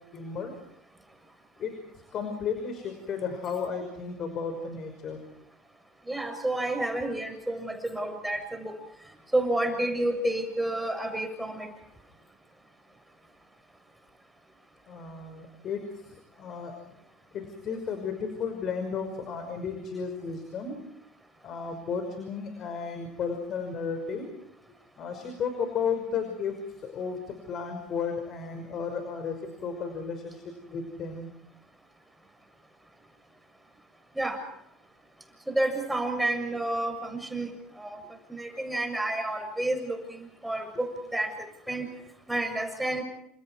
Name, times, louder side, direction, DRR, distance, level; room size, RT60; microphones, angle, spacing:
voice 1, 0.1-0.5 1.6-1.7 2.1-5.2 14.9-16.7 17.3-20.8 21.4-24.3 25.0-31.3, left 6 dB, 50° left, 6 dB, 5.7 m, -34 dB
voice 2, 6.1-8.7 9.3-11.7 34.2-34.4 35.5-37.5 37.8-38.0 38.3-40.9 41.1-41.3 41.7-41.9 42.3-43.0, right 1 dB, 5° right, 6 dB, 7.2 m, -30 dB
30.0 x 28.5 x 4.7 m, 0.74 s
hypercardioid pair, 80°, 0 cm